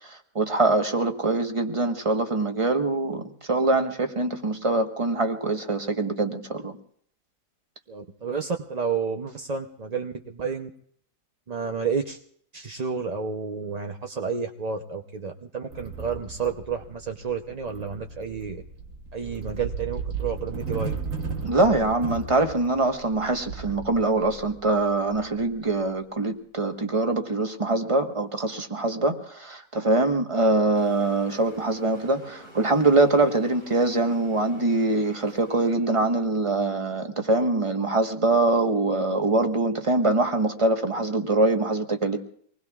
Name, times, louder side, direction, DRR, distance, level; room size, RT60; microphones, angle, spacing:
voice 1, 0.3-3.2 3.5-6.7 21.4-42.2, right 2 dB, 20° right, 5 dB, 1.2 m, -23 dB
voice 2, 7.9-10.7 11.5-12.2 12.5-18.6 19.1-21.0, right 5 dB, 40° right, 4 dB, 0.6 m, -30 dB
sound 1, 15.7-25.9, right 5 dB, 60° right, 1.7 m, -36 dB
sound 2, 30.7-36.2, right 1 dB, 85° right, 8.4 m, -47 dB
26.0 x 20.0 x 2.4 m, 0.62 s
omnidirectional pair, 1.6 m